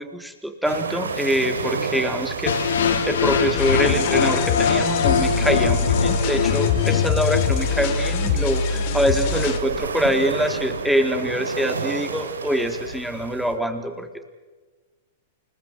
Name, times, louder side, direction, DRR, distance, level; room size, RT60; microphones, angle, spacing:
voice 1, 0.0-2.5 3.1-14.2, equal, ahead, 5 dB, 3.8 m, -24 dB
sound 1, 0.6-13.5, right 5 dB, 85° right, 3.2 m, -32 dB
sound 2, 2.5-8.5, left 6 dB, 75° left, 3.6 m, -23 dB
sound 3, 3.6-9.6, left 6 dB, 55° left, 3.6 m, -24 dB
29.5 x 19.5 x 7.9 m, 1.3 s
hypercardioid pair, 110°, 0 cm